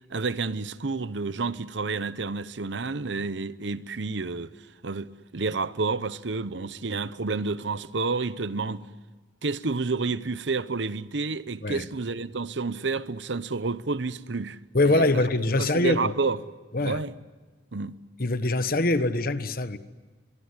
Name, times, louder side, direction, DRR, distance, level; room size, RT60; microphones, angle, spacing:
voice 1, 0.1-4.5 4.8-8.8 9.4-14.6 14.8-15.1 15.6-16.4 16.8-17.1 17.7-18.0, right 4 dB, 75° right, 0.9 m, -29 dB
voice 2, 14.7-16.1 16.7-17.0 18.2-19.8, left 2 dB, 50° left, 1.2 m, -23 dB
24.5 x 23.5 x 9.8 m
head